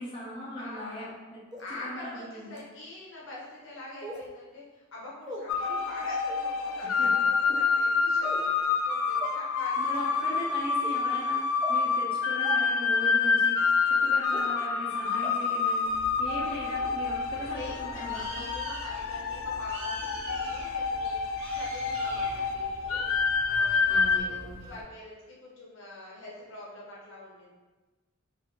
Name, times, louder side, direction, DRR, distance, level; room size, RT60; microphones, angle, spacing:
voice 1, 0.0-1.4 1.7-2.6 6.8-7.1 9.8-11.4 11.7-15.9 16.2-18.5 23.9-24.6, equal, 25° left, -7 dB, 1.0 m, -39 dB
voice 2, 0.6-1.1 1.6-10.6 17.4-21.2 21.5-27.5, left 2 dB, 65° left, -5 dB, 1.0 m, -45 dB
sound 1, 1.5-1.6 2.5-2.6 4.0-4.2 5.2-5.4 6.2-6.4 7.4-7.7 8.2-8.5 9.2-9.3 9.9-10.1 10.8-10.9 11.6-11.7 12.4-12.5 13.4-13.5 14.3-14.4 15.2-15.3 15.8-15.9, right 1 dB, 20° right, 0.6 m, -39 dB
sound 2, 5.5-24.2, left 5 dB, 90° left, 0.3 m, -28 dB
Bird, 15.9-24.8, right 1 dB, 75° right, 0.8 m, -43 dB
4.5 x 2.8 x 3.1 m, 1.2 s
head